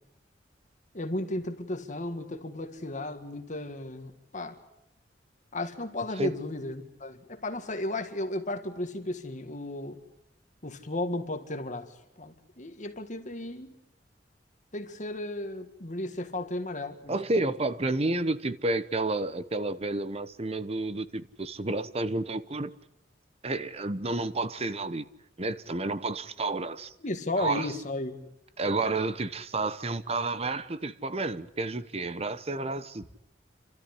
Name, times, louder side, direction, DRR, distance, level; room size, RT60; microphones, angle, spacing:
voice 1, 0.9-4.6 5.5-10.0 10.6-13.7 14.7-17.2 27.0-28.2, left 1 dB, 45° left, 1.8 m, -34 dB
voice 2, 17.1-22.7 23.4-25.1 25.4-26.9 27.4-27.7 28.6-33.1, right 2 dB, 35° right, 0.9 m, -30 dB
28.5 x 13.5 x 9.9 m
head